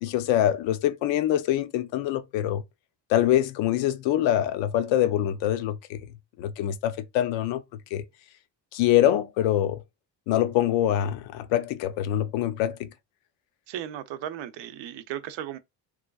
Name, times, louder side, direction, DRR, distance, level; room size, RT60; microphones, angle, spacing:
voice 1, 0.0-2.6 3.1-6.0 6.4-7.6 7.9-8.0 8.7-9.8 10.3-12.9, left 12 dB, 90° left, 0.6 m, -24 dB
voice 2, 13.7-15.6, right 11 dB, 75° right, 0.6 m, -36 dB
3.0 x 2.4 x 2.3 m
cardioid pair, 95°, 44 cm